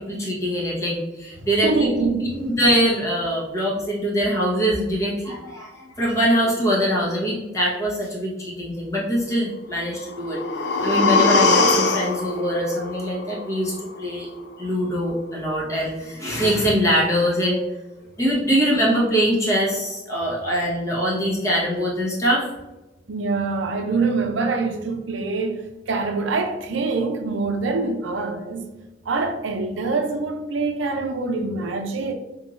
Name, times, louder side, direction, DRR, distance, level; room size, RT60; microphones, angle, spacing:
voice 1, 0.0-1.9 2.3-14.3 14.6-17.6 18.2-22.4, equal, 15° left, 1.1 m, -23 dB
voice 2, 1.4-2.3 23.1-28.7 29.1-32.1, right 3 dB, 85° right, 0.6 m, -25 dB
sound 1, 10.0-14.0 14.3-14.4, left 3 dB, 60° left, 0.5 m, -22 dB
5.5 x 3.0 x 2.5 m
head